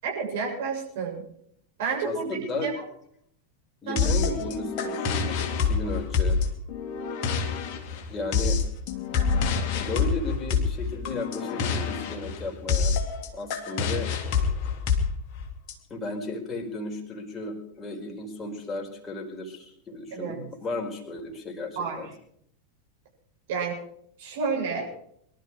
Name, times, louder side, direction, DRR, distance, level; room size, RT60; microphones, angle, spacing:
voice 1, 0.0-1.3 1.8-2.7 3.9-4.1 20.1-20.4 21.8-22.0 23.5-23.8 24.2-24.9, right 5 dB, 55° right, -1 dB, 7.1 m, -30 dB
voice 2, 2.0-2.7 3.8-6.4 8.1-8.6 9.8-12.9 13.3-14.1 15.9-22.1, left 2 dB, 20° left, 1 dB, 4.7 m, -34 dB
sound 1, 4.0-15.7, left 5 dB, 40° left, 2.8 m, -27 dB
23.5 x 12.5 x 4.8 m, 0.68 s
figure-of-eight pair, 90°, 0 cm